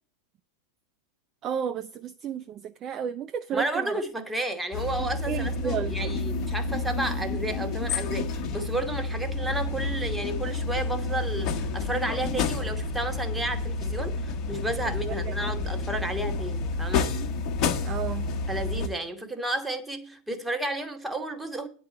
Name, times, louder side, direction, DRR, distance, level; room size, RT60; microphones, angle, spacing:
voice 1, 1.4-4.0 5.0-6.1 14.8-15.5 17.8-18.4, right 8 dB, 30° right, 0.4 m, -33 dB
voice 2, 3.5-17.1 18.5-21.7, right 1 dB, 5° right, 1.3 m, -32 dB
sound 1, 4.7-18.9, left 3 dB, 35° left, 1.0 m, -30 dB
9.9 x 4.7 x 7.5 m
figure-of-eight pair, 90°, 0 cm